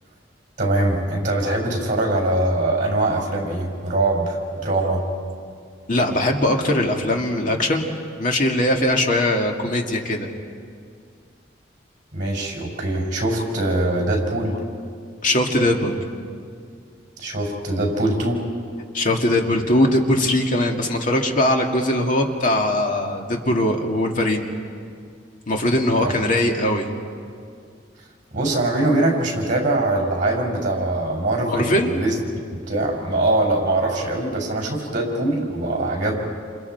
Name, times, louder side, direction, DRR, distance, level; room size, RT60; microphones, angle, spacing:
voice 1, 0.6-5.1 12.1-14.6 17.2-18.4 26.0-26.1 28.3-32.1 32.5-36.2, right 2 dB, 45° right, 0 dB, 5.8 m, -22 dB
voice 2, 5.9-7.9 8.2-10.3 15.2-16.0 18.9-24.5 25.5-26.9 31.5-31.9, left 1 dB, 45° left, 2 dB, 2.1 m, -20 dB
29.5 x 28.0 x 4.6 m, 2.2 s
head